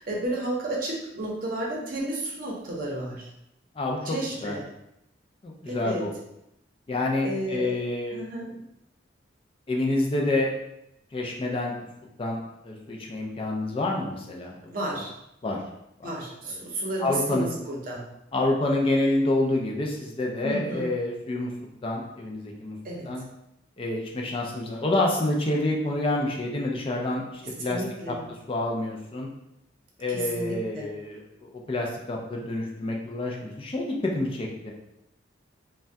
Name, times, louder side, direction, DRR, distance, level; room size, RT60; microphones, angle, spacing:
voice 1, 0.0-3.3 4.0-4.6 5.7-6.0 7.2-7.8 8.1-8.5 14.7-15.1 16.0-18.0 20.4-20.9 22.8-23.1 27.6-28.3 30.1-30.9, right 1 dB, 45° right, -3 dB, 0.7 m, -32 dB
voice 2, 3.8-4.2 4.4-4.6 5.4-6.1 6.9-8.3 9.7-10.5 11.1-11.7 12.2-14.6 14.9-15.0 15.4-15.6 16.0-16.1 16.5-16.6 17.0-17.5 18.3-21.5 21.8-22.8 23.1-23.2 23.8-28.1 28.5-29.3 30.0-34.7, left 2 dB, 30° left, -1 dB, 0.4 m, -28 dB
3.3 x 2.2 x 2.6 m, 0.82 s
head